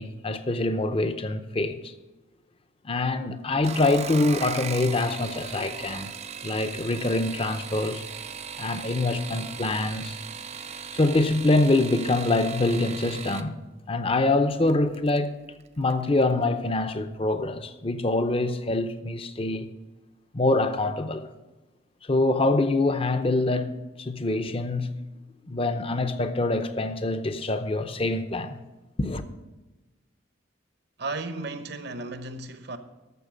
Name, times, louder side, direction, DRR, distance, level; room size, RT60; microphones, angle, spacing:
voice 1, 0.0-1.9 2.8-6.1 6.4-8.0 8.6-10.2 10.9-13.6 13.9-15.4 15.8-19.7 20.3-21.2 22.0-25.0 25.5-28.6 29.0-29.2, left 2 dB, 30° left, 0.7 m, -25 dB
sound 1, 3.5-13.5 14.7-15.2 15.6-16.0 16.3-16.4, right 7 dB, 35° right, 0.5 m, -38 dB
voice 2, 31.0-32.8, right 3 dB, 55° right, 0.9 m, -34 dB
14.0 x 6.2 x 5.1 m
head